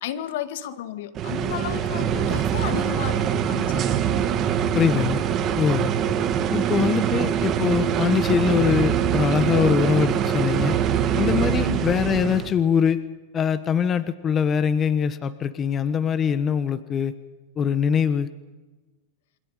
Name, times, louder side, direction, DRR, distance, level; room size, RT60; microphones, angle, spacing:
voice 1, 0.0-4.0 11.6-11.9, left 10 dB, 70° left, 11 dB, 2.0 m, -33 dB
sound 1, 1.2-12.5, right 9 dB, 35° right, 2.0 m, -23 dB
voice 2, 4.7-5.2 5.5-5.9 6.5-10.8 11.2-13.0 13.3-17.1 17.6-18.3, left 7 dB, 30° left, 13 dB, 1.2 m, -23 dB
28.0 x 25.5 x 5.1 m, 1.2 s
hypercardioid pair, 115°, 0 cm